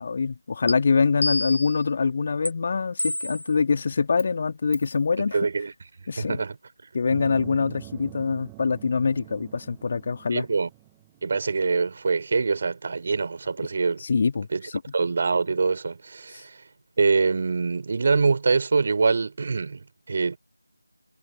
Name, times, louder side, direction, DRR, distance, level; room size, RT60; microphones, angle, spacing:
voice 1, 0.0-5.4 6.1-6.4 6.9-10.5 14.0-14.7, left 5 dB, 30° left, 3.0 m, -24 dB
sound 1, 0.7-0.8 1.2-1.8 2.5-2.6 3.0-3.5 4.2-4.3 4.7-4.9, left 1 dB, 75° left, 1.7 m, -28 dB
voice 2, 5.3-5.7 6.2-6.6 10.3-10.7 11.2-14.0 14.5-14.6 14.9-16.6 17.0-20.4, right 4 dB, 35° right, 4.1 m, -24 dB
sound 2, 7.1-12.0, right 26 dB, 10° right, 1.2 m, -44 dB
figure-of-eight pair, 165°, 0 cm